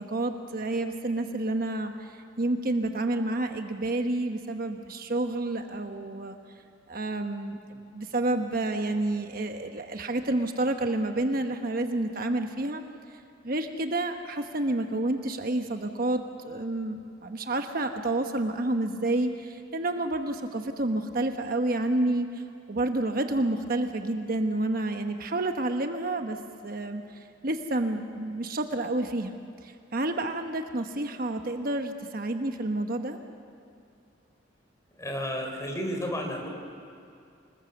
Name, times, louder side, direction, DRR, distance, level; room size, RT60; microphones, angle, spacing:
voice 1, 0.0-1.9 2.4-6.4 6.9-7.6 7.9-12.8 13.4-22.3 22.7-26.4 26.6-27.0 27.4-29.4 29.9-33.2, right 2 dB, 50° right, 6 dB, 1.1 m, -29 dB
voice 2, 34.9-36.5, equal, 15° left, 2 dB, 3.6 m, -32 dB
26.5 x 20.5 x 7.0 m, 2.4 s
head